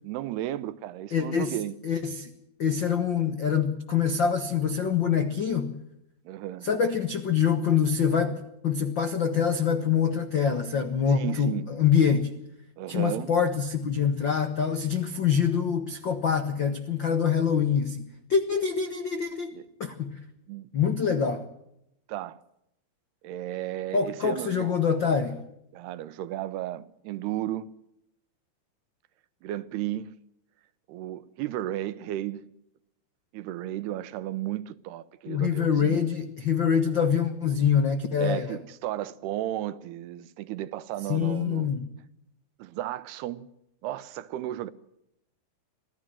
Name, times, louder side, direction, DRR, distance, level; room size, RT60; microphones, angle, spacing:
voice 1, 0.0-1.7 6.3-6.7 11.1-11.7 12.8-13.3 19.5-19.7 20.5-20.7 22.1-22.4 23.2-24.7 25.7-27.7 29.4-30.2 30.9-32.5 33.3-36.0 38.2-41.7 42.6-43.5 43.8-44.7, right 13 dB, 85° right, 3.0 m, -34 dB
voice 2, 1.1-1.5 1.8-2.3 2.6-5.8 6.6-12.3 12.9-19.5 19.8-20.1 20.7-21.4 23.9-25.4 35.3-38.6 41.1-41.8, left 7 dB, 70° left, 1.1 m, -25 dB
25.5 x 16.0 x 7.7 m
omnidirectional pair, 4.6 m